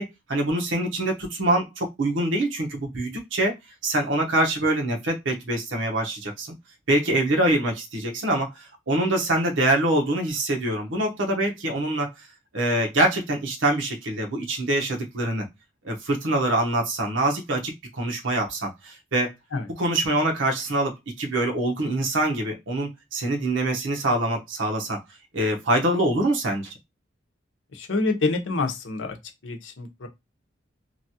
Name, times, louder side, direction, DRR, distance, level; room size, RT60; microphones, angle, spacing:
voice 1, 0.0-3.5 3.8-6.5 6.9-12.1 12.5-15.5 15.8-19.3 19.8-25.0 25.3-26.7, right 1 dB, 90° right, 0.9 m, -24 dB
voice 2, 27.7-29.2 29.4-30.1, left 3 dB, 90° left, 0.7 m, -27 dB
3.0 x 2.4 x 2.7 m
head